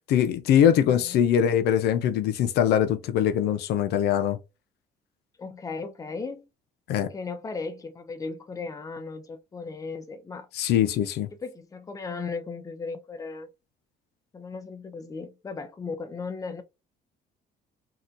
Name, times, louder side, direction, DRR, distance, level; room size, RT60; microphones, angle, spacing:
voice 1, 0.1-4.4 6.9-7.1 10.5-11.3, left 9 dB, 75° left, 0.5 m, -22 dB
voice 2, 0.9-1.4 5.4-6.5 7.1-10.5 11.4-13.5 14.3-16.6, left 4 dB, 20° left, 0.6 m, -36 dB
2.8 x 2.2 x 3.7 m
cardioid pair, 110°, 17 cm